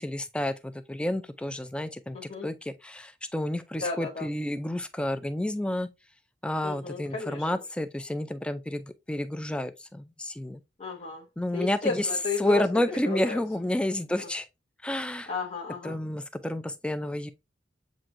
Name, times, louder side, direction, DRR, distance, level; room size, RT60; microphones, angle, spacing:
voice 1, 0.0-2.2 2.4-5.9 6.4-8.8 9.1-10.6 11.4-12.1 12.4-14.4 14.8-15.3 15.8-17.3, left 1 dB, 5° left, 0.3 m, -30 dB
voice 2, 2.1-2.5 3.8-4.3 6.6-7.6 10.8-11.2 11.5-12.6 13.1-13.4 14.2-14.3 15.3-16.0, left 4 dB, 40° left, 0.7 m, -34 dB
7.4 x 2.6 x 2.5 m
head